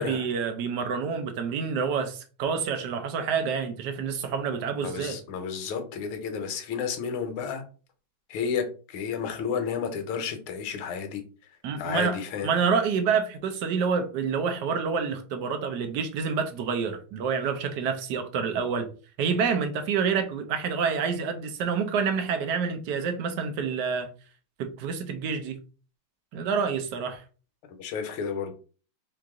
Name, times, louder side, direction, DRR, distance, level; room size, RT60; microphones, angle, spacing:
voice 1, 0.0-5.2 11.6-18.9 19.2-24.1 24.6-25.6 26.3-27.2, right 6 dB, 65° right, 1.1 m, -28 dB
voice 2, 4.8-7.6 8.3-11.2 11.8-12.5 27.8-28.5, left 6 dB, 75° left, 1.6 m, -31 dB
4.7 x 2.5 x 3.6 m
omnidirectional pair, 2.4 m